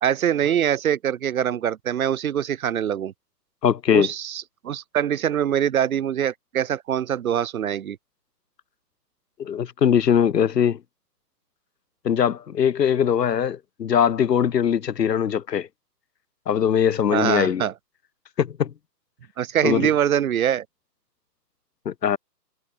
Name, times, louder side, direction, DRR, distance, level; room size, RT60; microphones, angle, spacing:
voice 1, 0.0-3.1 3.9-8.0 17.1-17.7 19.4-20.6, right 9 dB, 55° right, 1.5 m, -23 dB
voice 2, 3.6-4.1 9.4-10.8 12.0-15.7 16.5-17.7 18.4-18.7 19.6-19.9 21.9-22.2, left 8 dB, 75° left, 1.8 m, -21 dB
hypercardioid pair, 155°, 49 cm